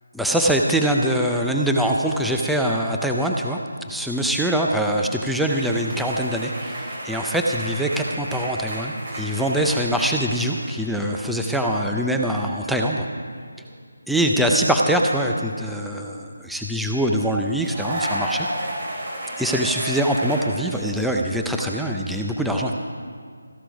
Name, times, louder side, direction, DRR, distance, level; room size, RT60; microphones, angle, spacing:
voice 1, 0.1-3.6 3.9-13.1 14.1-18.5 19.4-22.7, right 1 dB, ahead, 0 dB, 0.5 m, -23 dB
sound 1, 5.4-10.9 11.2-11.6 13.5-13.7 17.6-20.4, right 1 dB, 35° right, 4.1 m, -32 dB
14.5 x 11.5 x 5.2 m, 2.1 s
figure-of-eight pair, 165°, 0 cm